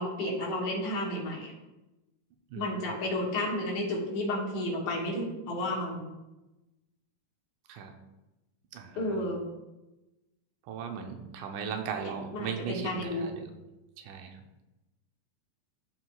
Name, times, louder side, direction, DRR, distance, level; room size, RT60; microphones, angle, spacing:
voice 1, 0.0-1.5 2.5-6.1 9.0-9.5 12.3-13.3, left 1 dB, 65° left, -4 dB, 2.8 m, -32 dB
voice 2, 2.5-2.9 7.7-8.0 8.7-9.3 10.6-13.5 14.0-14.4, right 7 dB, 85° right, 5 dB, 2.3 m, -38 dB
13.0 x 4.6 x 2.3 m, 1.0 s
omnidirectional pair, 3.6 m